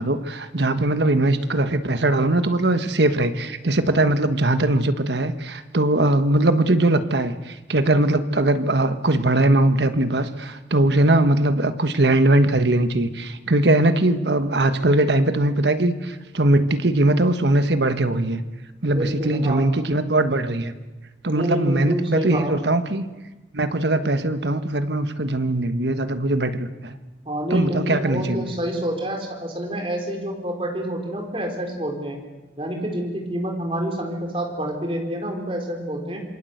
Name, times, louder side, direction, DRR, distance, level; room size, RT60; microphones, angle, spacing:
voice 1, 0.0-18.4 18.8-20.7 21.2-23.0 23.5-26.9 27.5-28.5, right 1 dB, 75° right, 10 dB, 1.4 m, -20 dB
voice 2, 18.8-19.7 21.3-22.7 27.3-32.2 32.6-36.2, right 1 dB, 30° right, 2 dB, 4.2 m, -28 dB
26.5 x 23.0 x 8.0 m, 1.1 s
head